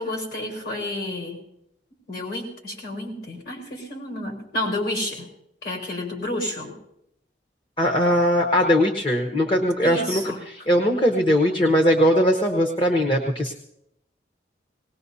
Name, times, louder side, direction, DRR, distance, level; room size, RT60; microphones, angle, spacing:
voice 1, 0.0-1.4 2.1-5.3 5.6-6.7 9.8-10.4, left 1 dB, 60° left, 2 dB, 4.6 m, -30 dB
voice 2, 7.8-13.5, equal, 30° left, 1 dB, 1.0 m, -20 dB
19.5 x 19.0 x 2.8 m, 0.78 s
head